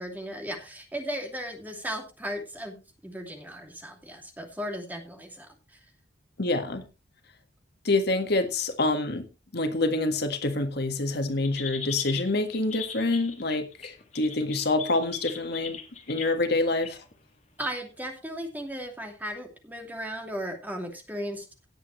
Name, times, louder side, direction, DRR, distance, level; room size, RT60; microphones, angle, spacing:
voice 1, 0.0-5.8 17.6-21.5, equal, 10° right, 3 dB, 2.6 m, -36 dB
voice 2, 6.4-6.8 7.8-9.2 9.5-15.8 16.1-17.0, left 2 dB, 60° left, 7 dB, 1.6 m, -26 dB
sound 1, 11.4-16.3 16.8-17.1 17.6-17.7, left 8 dB, 40° left, 2.2 m, -39 dB
17.5 x 8.3 x 3.2 m, 0.29 s
head